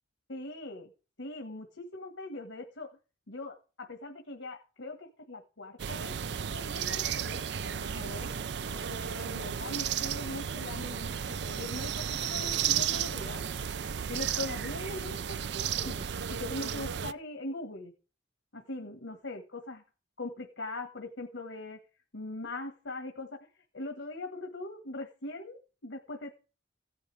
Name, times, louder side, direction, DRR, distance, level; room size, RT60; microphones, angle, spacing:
voice 1, 0.3-0.9 1.2-2.9 3.3-6.1 6.5-8.3 8.7-13.4 14.1-17.9 18.5-19.8 20.2-21.8 22.1-23.5 23.7-26.4, left 2 dB, 90° left, 3 dB, 1.6 m, -41 dB
sound 1, 5.8-17.1, right 8 dB, 65° right, 0.4 m, -33 dB
16.0 x 9.4 x 3.4 m, 0.36 s
head